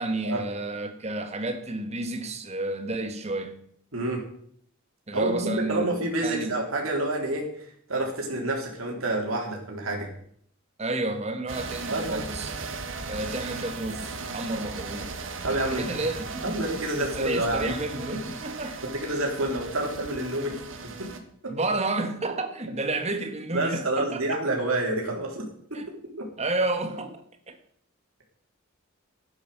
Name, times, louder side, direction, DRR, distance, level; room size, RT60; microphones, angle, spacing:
voice 1, 0.0-3.6 5.1-5.9 6.2-6.6 10.8-12.5 13.1-15.2 15.5-16.6 17.0-18.8 20.5-20.6 21.5-24.4 25.7-25.9 26.4-27.6, right 2 dB, 30° right, 1.6 m, -31 dB
voice 2, 3.9-4.3 5.1-10.1 11.9-12.2 15.4-16.0 16.4-17.7 18.1-18.2 18.8-20.6 21.0-21.1 21.4-21.6 23.5-26.3, right 2 dB, 90° right, 3.4 m, -28 dB
sound 1, 11.5-21.2, right 4 dB, 65° right, 1.7 m, -37 dB
12.0 x 9.5 x 6.7 m
head